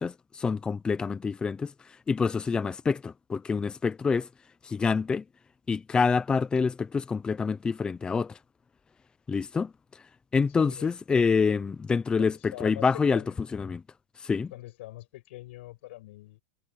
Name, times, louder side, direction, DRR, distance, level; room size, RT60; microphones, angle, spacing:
voice 1, 0.0-4.3 4.6-5.2 5.7-8.4 9.3-10.0 10.3-13.2 13.5-13.8 14.2-14.5, left 5 dB, 15° left, 0.7 m, -27 dB
voice 2, 10.6-10.9 11.5-11.7 12.2-12.8 13.1-13.3 14.5-16.4, left 17 dB, 75° left, 6.3 m, -44 dB
supercardioid pair, 145°, 7 cm